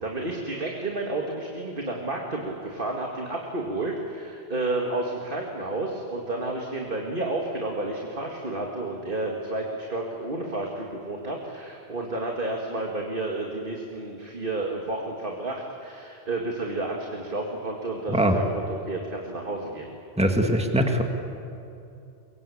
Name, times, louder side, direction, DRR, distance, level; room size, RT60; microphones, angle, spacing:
voice 1, 0.0-19.9, right 2 dB, 50° right, 0 dB, 2.3 m, -31 dB
voice 2, 20.2-21.0, equal, 5° right, 3 dB, 1.8 m, -21 dB
23.5 x 22.5 x 8.6 m, 2.8 s
omnidirectional pair, 1.2 m